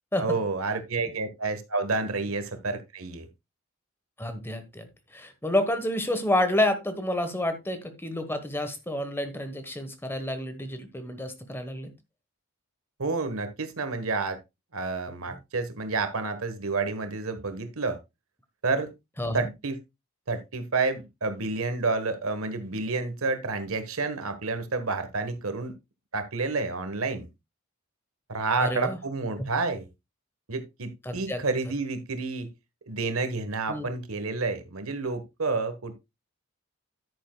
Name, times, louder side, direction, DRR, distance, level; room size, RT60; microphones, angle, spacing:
voice 1, 0.2-3.3 13.0-14.4 14.7-18.0 18.6-18.9 19.3-19.8 20.3-25.7 26.1-27.3 28.3-29.9 30.5-32.5 32.9-36.0, right 3 dB, 85° right, 9 dB, 1.4 m, -29 dB
voice 2, 4.2-4.9 5.1-11.9 19.2-19.4 28.6-29.0 31.0-31.4 33.7-33.9, left 1 dB, 10° left, 9 dB, 1.2 m, -29 dB
10.0 x 9.3 x 2.3 m, 0.22 s
head